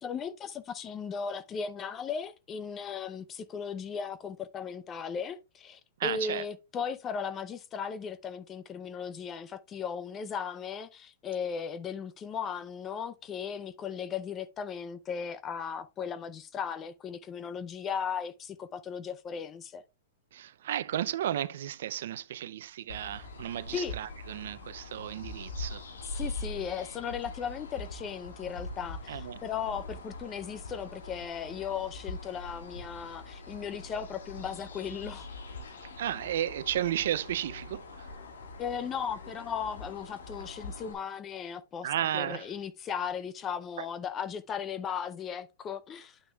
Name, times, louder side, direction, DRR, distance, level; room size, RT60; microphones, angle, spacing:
voice 1, 0.0-19.8 23.7-23.9 26.1-35.3 38.6-46.2, left 7 dB, 25° left, 0.5 m, -37 dB
voice 2, 6.0-6.4 20.3-25.8 29.1-29.4 36.0-38.1 41.8-42.5, right 11 dB, 70° right, 0.5 m, -33 dB
sound 1, 22.9-40.9, left 2 dB, 90° left, 1.7 m, -43 dB
9.5 x 6.0 x 2.3 m
hypercardioid pair, 135°, 0 cm